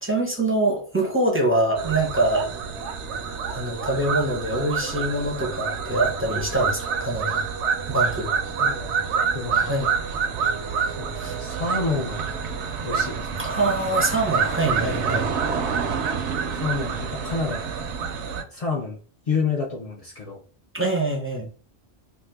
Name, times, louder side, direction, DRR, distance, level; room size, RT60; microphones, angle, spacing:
voice 1, 0.0-2.5 3.3-7.4 7.9-8.4 9.6-9.9 11.2-11.4 13.4-15.3 20.7-21.5, right 1 dB, 15° right, 0.6 m, -24 dB
sound 1, 1.8-18.4, right 6 dB, 85° right, 0.9 m, -27 dB
voice 2, 8.6-9.0 9.3-9.7 10.8-12.3 12.8-13.4 16.6-17.7 18.5-19.0 19.3-20.4, left 4 dB, 50° left, 0.4 m, -29 dB
2.6 x 2.4 x 3.4 m
omnidirectional pair, 1.1 m